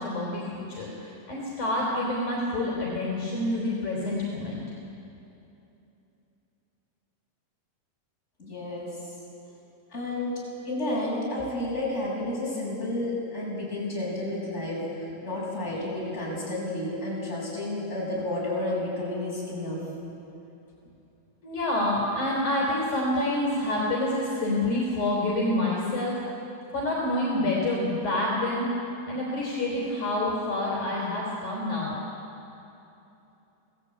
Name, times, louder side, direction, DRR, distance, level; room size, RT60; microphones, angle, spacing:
voice 1, 0.0-4.6 21.4-26.2 26.7-28.7 29.1-32.0, left 1 dB, 55° left, -4 dB, 5.3 m, -27 dB
voice 2, 8.4-8.9 9.9-10.4 10.6-19.8, left 1 dB, 15° left, -5 dB, 7.5 m, -31 dB
26.0 x 17.0 x 8.7 m, 2.8 s
omnidirectional pair, 4.2 m